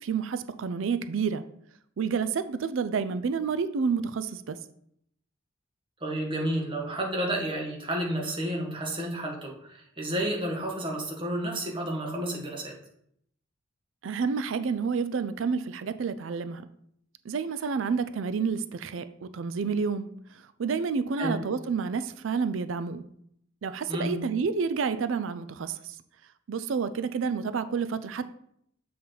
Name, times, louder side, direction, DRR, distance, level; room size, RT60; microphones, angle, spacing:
voice 1, 0.0-1.4 2.0-4.6 14.0-16.6 17.2-23.0 23.6-26.0 26.5-28.3, right 5 dB, 75° right, 12 dB, 0.4 m, -29 dB
voice 2, 6.0-12.8 21.2-21.4 23.9-24.1, right 1 dB, 25° right, -1 dB, 1.4 m, -31 dB
7.4 x 4.3 x 3.9 m, 0.70 s
head